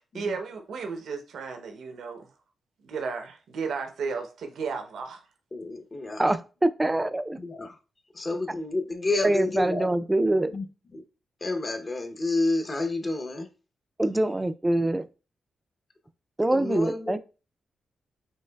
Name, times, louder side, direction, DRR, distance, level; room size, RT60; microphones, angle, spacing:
voice 1, 0.0-2.3 2.8-5.3, right 5 dB, 85° right, 0.7 m, -34 dB
voice 2, 5.5-6.2 7.4-7.7 8.2-9.9 10.5-10.6 11.4-13.5 16.6-17.2, left 2 dB, 35° left, 0.7 m, -29 dB
voice 3, 6.2-7.4 9.2-10.5 14.0-15.0 16.4-17.2, right 1 dB, 15° right, 0.3 m, -24 dB
5.5 x 3.1 x 2.2 m
cardioid pair, 85°, 0 cm